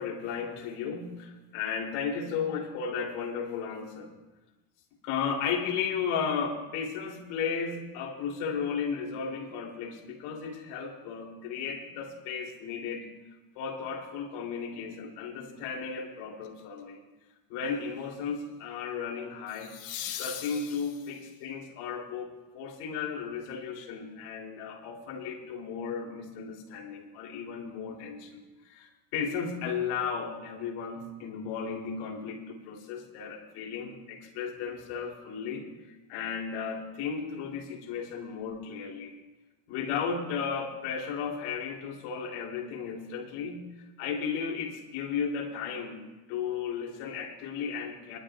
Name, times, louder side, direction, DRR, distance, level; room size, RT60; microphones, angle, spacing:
voice 1, 0.0-4.1 5.0-13.1 13.6-17.0 17.5-19.7 20.2-39.1 39.7-43.7 44.0-46.0 46.3-48.2, left 6 dB, 85° left, -1 dB, 3.7 m, -34 dB
sound 1, 16.4-16.8 19.5-21.3 24.2-24.3, left 10 dB, 70° left, 3.4 m, -40 dB
24.5 x 12.5 x 2.5 m, 1.1 s
cardioid pair, 125°, 47 cm